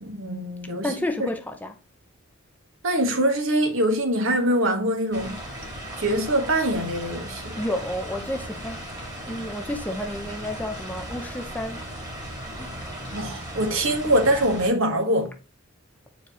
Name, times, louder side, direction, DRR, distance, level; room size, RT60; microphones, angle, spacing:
voice 1, 0.0-0.9 1.2-1.3 2.8-5.4 6.0-7.6 13.1-15.3, right 1 dB, 60° right, 1.4 m, -23 dB
voice 2, 0.8-1.8 7.5-8.8 9.3-11.9 12.6-12.7, left 1 dB, 10° left, 0.5 m, -31 dB
sound 1, 5.1-14.7, right 1 dB, 15° right, 2.0 m, -37 dB
8.4 x 4.6 x 3.0 m
head